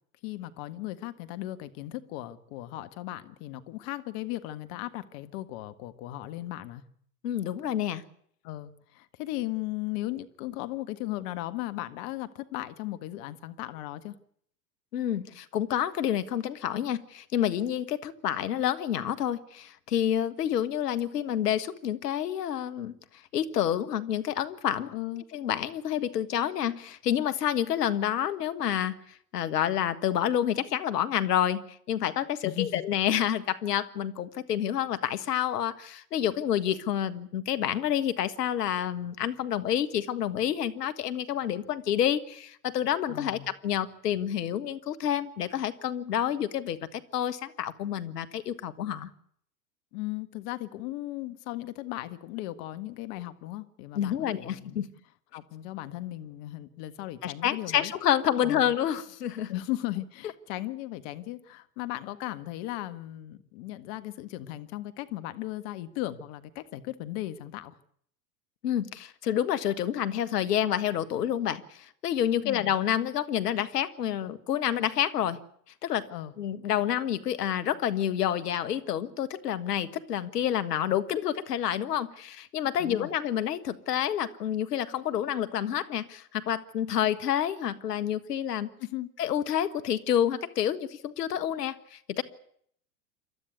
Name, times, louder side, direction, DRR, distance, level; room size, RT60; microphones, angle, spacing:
voice 1, 0.2-6.8 8.4-14.1 24.9-25.2 32.4-32.8 43.1-43.5 49.9-54.8 55.3-57.9 58.4-58.8 59.5-67.8 72.4-72.8 76.1-76.3 82.8-83.1 88.8-89.1, left 16 dB, 50° left, 11 dB, 1.7 m, -37 dB
voice 2, 7.2-8.0 14.9-22.9 23.3-24.9 25.3-29.0 29.3-49.1 53.9-54.9 57.2-59.5 68.6-75.4 75.8-76.1 76.4-88.7 89.2-92.2, left 10 dB, 75° left, 13 dB, 1.6 m, -28 dB
27.5 x 12.5 x 9.4 m, 0.66 s
hypercardioid pair, 90°, 48 cm